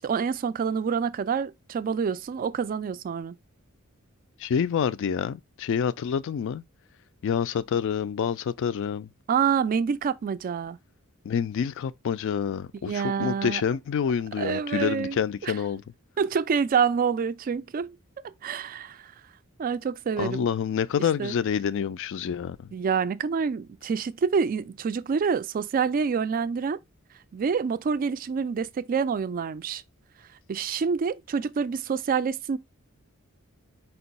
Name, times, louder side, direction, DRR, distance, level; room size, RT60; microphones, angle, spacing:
voice 1, 0.0-3.4 9.3-10.8 12.9-13.6 14.4-15.2 15.4-15.5 16.2-18.0 18.4-19.1 19.6-20.5 21.2-21.3 22.7-26.8 27.3-29.8 30.5-32.6, right 6 dB, 40° right, 0.3 m, -27 dB
voice 2, 4.4-6.6 7.2-9.1 11.2-15.8 20.2-22.7, left 7 dB, 60° left, 0.3 m, -27 dB
4.4 x 2.3 x 3.9 m
head